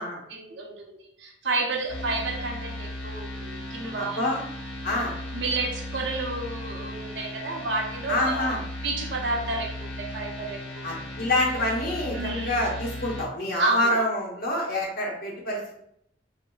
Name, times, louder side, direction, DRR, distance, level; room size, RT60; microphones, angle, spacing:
voice 1, 0.3-4.2 5.3-8.6 8.8-11.0 12.1-12.6 13.6-14.0, right 2 dB, 70° right, 0 dB, 0.7 m, -30 dB
sound 1, 1.9-13.3, left 1 dB, 65° left, 1.1 m, -36 dB
voice 2, 4.0-4.4 4.8-5.1 8.1-8.6 10.8-15.8, left 1 dB, 50° left, -3 dB, 1.0 m, -27 dB
4.2 x 2.7 x 2.3 m, 0.72 s
head